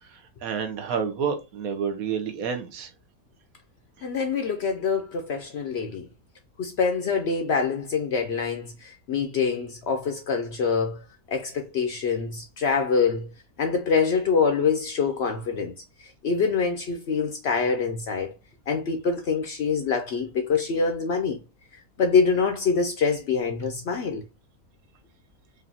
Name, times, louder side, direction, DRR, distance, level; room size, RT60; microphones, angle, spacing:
voice 1, 0.0-2.9, right 6 dB, 75° right, 1.2 m, -29 dB
voice 2, 4.0-6.1 6.6-11.0 11.3-13.3 13.6-15.7 16.2-18.3 18.7-21.4 22.0-24.2, left 5 dB, 65° left, 0.7 m, -25 dB
4.9 x 2.5 x 2.7 m
omnidirectional pair, 1.5 m